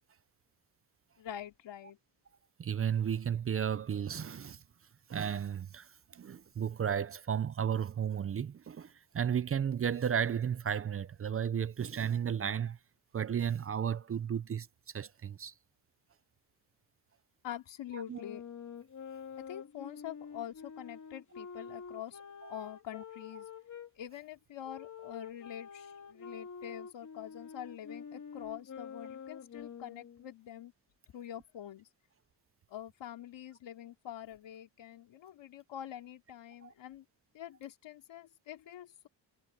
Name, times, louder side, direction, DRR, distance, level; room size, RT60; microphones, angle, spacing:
voice 1, 1.2-2.0 17.4-18.4 19.4-22.2 22.5-23.5 24.0-30.7 31.1-31.9 32.7-37.0 37.3-39.1, left 11 dB, 90° left, 2.8 m, -45 dB
voice 2, 2.6-4.6 5.1-12.8 13.1-14.7 14.9-15.5 17.9-18.2 22.4-22.5 36.6-36.7, right 8 dB, 30° right, 0.5 m, -33 dB
sound 1, 18.1-23.9 24.6-30.3, left 6 dB, 40° left, 3.0 m, -47 dB
wide cardioid pair, 160°, 43 cm